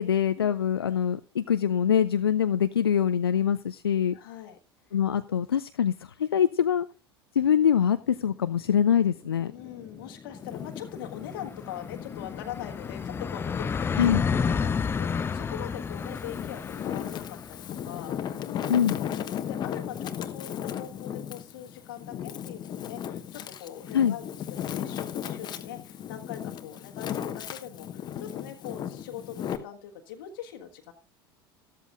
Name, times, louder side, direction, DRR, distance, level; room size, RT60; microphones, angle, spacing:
voice 1, 0.0-4.2 4.9-6.9 7.4-9.5 14.0-14.2 18.7-19.0 23.9-24.2, left 8 dB, 75° left, 11 dB, 0.5 m, -24 dB
voice 2, 4.1-4.6 4.9-5.0 9.5-14.1 14.4-24.3 24.6-30.9, left 10 dB, 60° left, 5 dB, 1.4 m, -42 dB
sound 1, 8.5-8.6 8.9-9.0 9.2-20.7, left 6 dB, 20° left, 0.5 m, -32 dB
Wind, 10.3-13.2 13.7-15.0 15.6-29.6, left 9 dB, 35° left, 1.1 m, -36 dB
13.5 x 13.0 x 2.5 m, 0.31 s
figure-of-eight pair, 75°, 13 cm